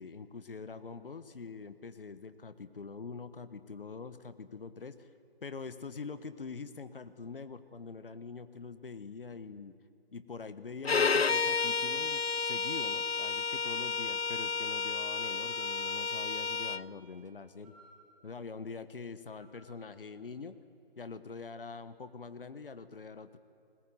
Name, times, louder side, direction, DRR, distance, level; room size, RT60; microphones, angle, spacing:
voice 1, 0.0-5.1 5.4-9.7 10.1-17.7 18.2-20.5 21.0-23.4, left 4 dB, 60° left, 12 dB, 1.3 m, -44 dB
Bowed string instrument, 10.8-16.8, left 5 dB, 85° left, 0.8 m, -31 dB
sound 1, 14.6-14.8 15.1-16.3 17.6-18.0 19.4-19.6, right 5 dB, 20° right, 5.0 m, -58 dB
20.5 x 19.5 x 9.4 m, 2.6 s
figure-of-eight pair, 155°, 30 cm